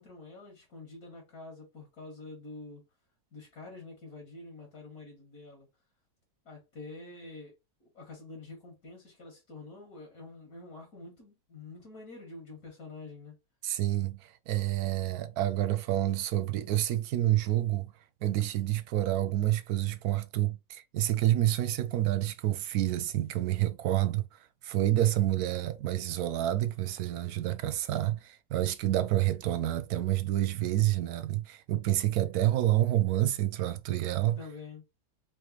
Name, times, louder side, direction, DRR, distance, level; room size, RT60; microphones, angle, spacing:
voice 1, 0.0-2.8 3.3-5.7 6.5-7.5 7.8-13.3 34.4-34.8, left 3 dB, 70° left, 2.4 m, -47 dB
voice 2, 13.6-17.9 18.2-34.4, right 14 dB, 80° right, 1.1 m, -28 dB
4.7 x 3.2 x 3.0 m
omnidirectional pair, 1.6 m